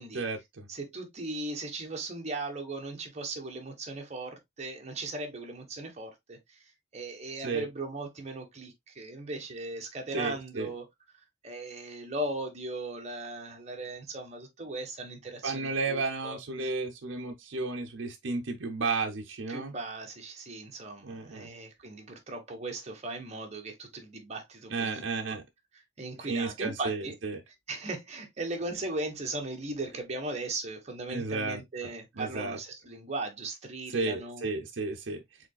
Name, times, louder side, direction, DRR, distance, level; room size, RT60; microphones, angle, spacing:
voice 1, 0.1-0.7 7.4-7.7 10.1-10.7 15.4-19.7 21.0-21.5 24.7-25.4 26.2-27.4 31.1-32.6 33.9-35.2, right 3 dB, 70° right, 0.7 m, -33 dB
voice 2, 0.7-6.6 6.9-10.8 11.4-16.4 19.5-25.4 26.0-27.1 27.7-34.5, right 2 dB, 35° right, 1.2 m, -38 dB
5.0 x 3.8 x 2.3 m
head